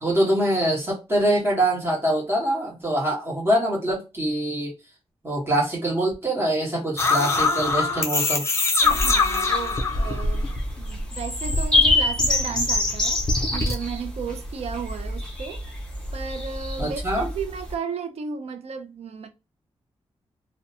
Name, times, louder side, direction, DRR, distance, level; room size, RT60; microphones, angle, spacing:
voice 1, 0.0-4.7 5.2-8.4 16.8-17.3, right 1 dB, 20° right, 1.1 m, -24 dB
sound 1, 7.0-11.0 11.3-13.7, left 3 dB, 25° left, 0.4 m, -24 dB
sound 2, 8.8-17.7, left 2 dB, 5° left, 1.1 m, -26 dB
voice 2, 8.8-10.5 10.8-13.2 13.5-15.7 16.1-19.3, right 6 dB, 85° right, 0.5 m, -34 dB
2.6 x 2.1 x 2.6 m
wide cardioid pair, 175°, 11 cm